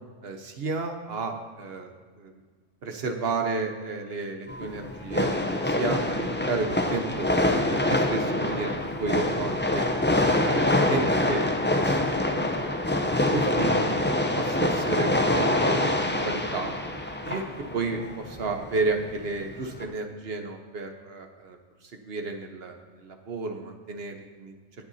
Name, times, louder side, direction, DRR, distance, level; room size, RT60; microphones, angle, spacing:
voice 1, 0.2-1.9 2.2-2.3 2.8-7.3 7.7-9.9 10.4-11.4 11.7-13.9 14.3-16.7 17.2-17.5 17.7-21.6 22.0-24.5, right 3 dB, 55° right, 4 dB, 1.3 m, -32 dB
sound 1, 4.5-19.8, left 1 dB, 15° left, 0.5 m, -25 dB
19.0 x 8.0 x 2.8 m, 1.5 s
omnidirectional pair, 1.3 m